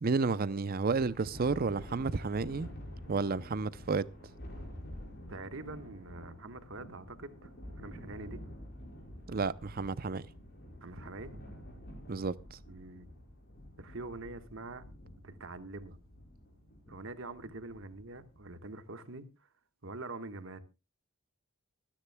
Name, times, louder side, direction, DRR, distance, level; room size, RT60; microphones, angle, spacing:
voice 1, 0.0-2.7 3.1-4.1 9.3-10.2 12.1-12.6, right 4 dB, 45° right, 0.6 m, -31 dB
Thunder, 0.9-18.6, equal, 50° left, 5.5 m, -49 dB
voice 2, 5.3-7.5 7.8-8.4 10.8-11.4 12.7-13.1 13.8-14.8 15.2-16.0 16.9-19.2 19.8-20.6, right 2 dB, 65° right, 1.4 m, -44 dB
25.5 x 10.0 x 2.2 m
head